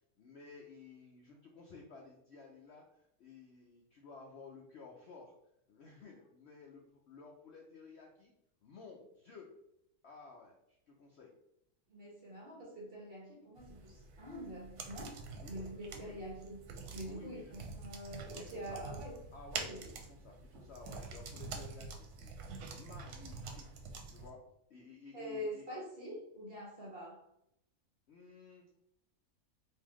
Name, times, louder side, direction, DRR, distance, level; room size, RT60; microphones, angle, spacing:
voice 1, 0.2-5.3 5.7-8.3 8.6-9.5 10.0-11.3 15.4-16.2 17.0-17.5 18.3-18.8 19.3-22.4 22.7-23.7 24.1-24.4 24.7-25.7 28.1-28.8, left 4 dB, 65° left, 0 dB, 0.6 m, -54 dB
voice 2, 11.9-15.2 15.5-16.7 16.9-19.2 19.5-19.9 25.1-27.2, equal, 45° right, -3 dB, 1.0 m, -45 dB
sound 1, 13.6-24.3, right 4 dB, 85° right, 1.1 m, -46 dB
3.7 x 2.7 x 3.0 m, 0.78 s
omnidirectional pair, 1.6 m